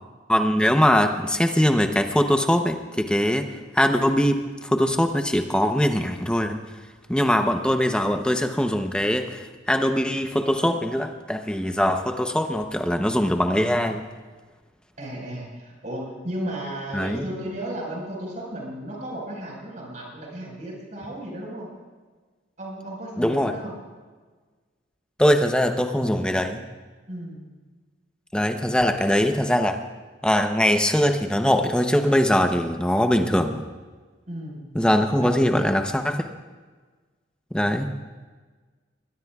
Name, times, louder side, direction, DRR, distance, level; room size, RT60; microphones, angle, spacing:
voice 1, 0.3-6.6 7.1-14.0 16.9-17.2 23.2-23.5 25.2-26.7 28.3-29.8 30.2-33.6 34.7-36.2 37.5-38.0, equal, 5° left, 6 dB, 0.8 m, -22 dB
voice 2, 15.0-21.7 22.6-23.7 27.1-27.4 34.3-34.6 35.2-35.3 35.6-35.7, right 1 dB, 40° right, -2 dB, 5.0 m, -34 dB
21.5 x 21.0 x 2.4 m, 1.4 s
head